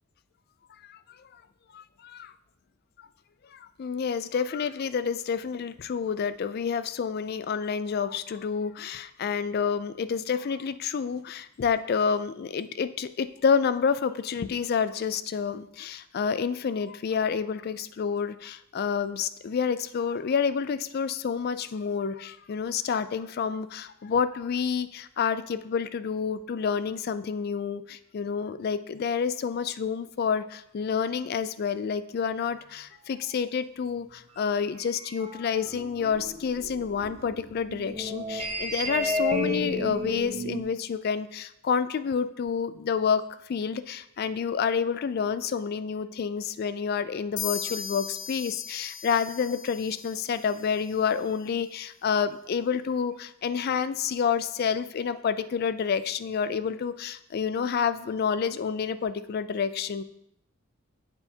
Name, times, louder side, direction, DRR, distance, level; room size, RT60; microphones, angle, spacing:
voice 1, 1.7-2.3 3.5-43.2 43.5-60.0, left 6 dB, 45° left, 14 dB, 0.3 m, -29 dB
sound 1, 34.8-40.6, left 1 dB, 30° right, 0.8 m, -32 dB
sound 2, 47.4-51.0, left 8 dB, 85° left, 1.0 m, -38 dB
7.9 x 6.9 x 2.8 m, 0.78 s
head